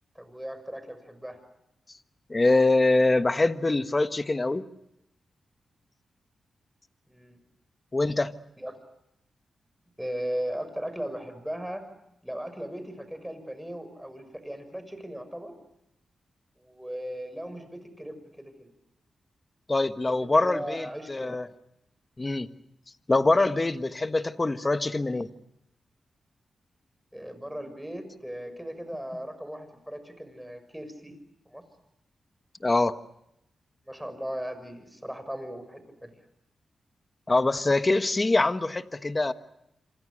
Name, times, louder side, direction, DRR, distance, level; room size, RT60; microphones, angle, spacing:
voice 1, 0.1-1.4 7.1-7.4 8.6-8.7 10.0-11.8 12.2-15.5 16.6-18.7 20.4-21.4 27.1-31.2 31.5-31.6 33.8-36.1, equal, 5° right, 6.5 m, -37 dB
voice 2, 2.3-4.7 7.9-8.4 19.7-21.5 22.2-22.5 23.1-25.3 32.6-33.0 37.3-39.3, left 2 dB, 30° left, 1.4 m, -24 dB
27.0 x 26.0 x 6.5 m
cardioid pair, 65°, 0 cm